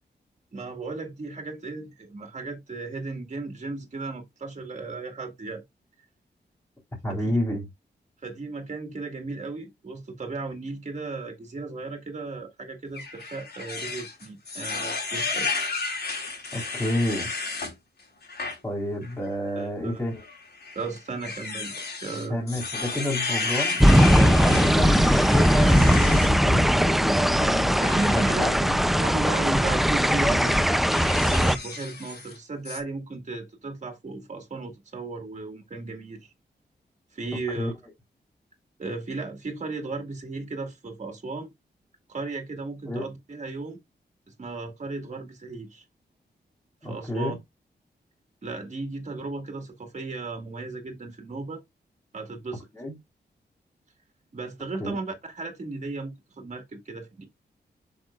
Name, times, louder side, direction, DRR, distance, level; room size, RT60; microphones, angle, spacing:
voice 1, 0.5-5.6 7.1-7.3 8.2-15.5 19.6-20.0 20.8-21.7 22.0-22.4 27.9-28.4 29.0-30.5 31.0-36.3 37.1-37.7 38.8-41.5 42.1-43.8 44.4-45.8 46.8-47.4 48.4-51.6 52.1-52.7 54.3-57.2, right 3 dB, 40° right, 2.1 m, -35 dB
voice 2, 7.0-7.7 16.5-17.3 18.6-20.2 22.3-28.7 30.2-30.5 37.5-37.7 42.9-43.0 46.8-47.4 52.7-53.0 54.8-55.0, left 1 dB, 15° left, 3.7 m, -30 dB
sound 1, 12.9-17.7 18.2-18.6 19.0-19.1 20.2-26.3 27.8-28.4 29.4-29.6 30.1-32.4 32.6-32.8, left 4 dB, 65° left, 4.5 m, -32 dB
sound 2, 23.8-31.6, equal, ahead, 0.5 m, -20 dB
7.7 x 6.6 x 2.5 m
wide cardioid pair, 150°, 18 cm